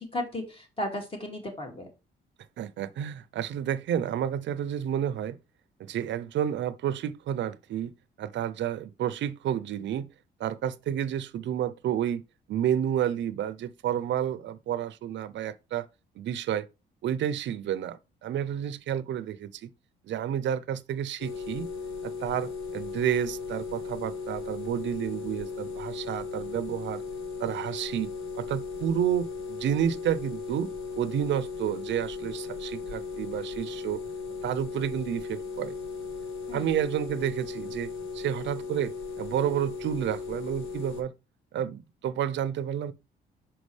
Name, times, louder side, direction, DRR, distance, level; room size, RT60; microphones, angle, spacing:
voice 1, 0.0-1.9 36.5-36.7, left 1 dB, 25° left, 2.3 m, -35 dB
voice 2, 2.6-5.4 5.8-7.9 8.2-10.1 10.4-12.2 12.5-15.9 16.2-16.7 17.0-19.7 20.0-21.7 22.0-27.0 27.4-30.7 31.0-34.0 34.4-35.8 36.5-41.1 41.5-42.9, right 10 dB, 65° right, 0.5 m, -30 dB
sound 1, 21.2-41.0, left 5 dB, 90° left, 0.9 m, -37 dB
5.8 x 5.2 x 3.2 m
cardioid pair, 90°, 20 cm